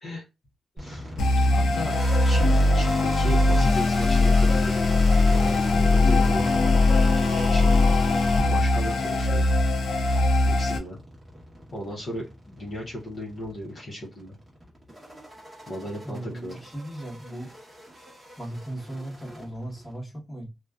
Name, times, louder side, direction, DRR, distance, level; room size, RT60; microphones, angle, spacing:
voice 1, 0.8-1.2 1.5-2.0 2.2-4.8 5.3-6.5 7.5-7.9 8.5-9.5 10.5-11.0 11.7-14.3 15.7-16.6, equal, 40° left, 0.7 m, -35 dB
The sound of music dying., 0.8-20.0, equal, 15° right, 1.0 m, -41 dB
sound 1, 1.2-10.8, left 2 dB, 85° left, 0.6 m, -20 dB
voice 2, 16.0-17.5 18.4-20.5, right 1 dB, 10° left, 1.1 m, -37 dB
2.5 x 2.2 x 2.3 m
wide cardioid pair, 165°, 0 cm